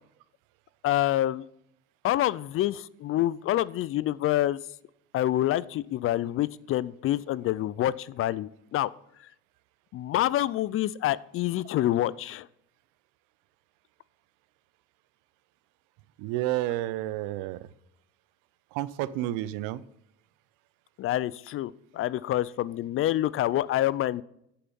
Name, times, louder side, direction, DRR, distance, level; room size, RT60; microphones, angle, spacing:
voice 1, 0.8-1.5 2.0-4.6 5.1-8.9 9.9-12.5 21.0-24.2, left 13 dB, 45° left, 19 dB, 0.4 m, -27 dB
voice 2, 16.2-17.6 18.7-19.8, right 15 dB, 75° right, 17 dB, 0.7 m, -30 dB
9.9 x 5.8 x 5.3 m, 0.75 s
supercardioid pair, 100°, 32 cm